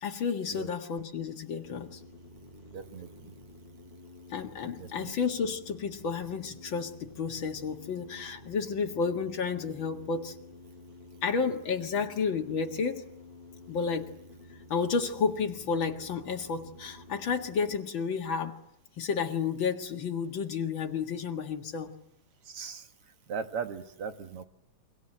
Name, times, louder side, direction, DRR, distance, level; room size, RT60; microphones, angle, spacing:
voice 1, 0.0-2.0 4.3-10.3 11.2-13.0 13.7-14.1 14.7-18.6 19.0-21.9, left 5 dB, 45° left, 4 dB, 2.1 m, -31 dB
sound 1, 1.6-17.8, left 2 dB, 15° left, 2.1 m, -51 dB
voice 2, 2.7-3.3 4.8-5.1 22.5-22.8 23.3-24.4, right 6 dB, 50° right, 7 dB, 2.4 m, -38 dB
28.5 x 24.0 x 7.8 m, 0.77 s
omnidirectional pair, 3.5 m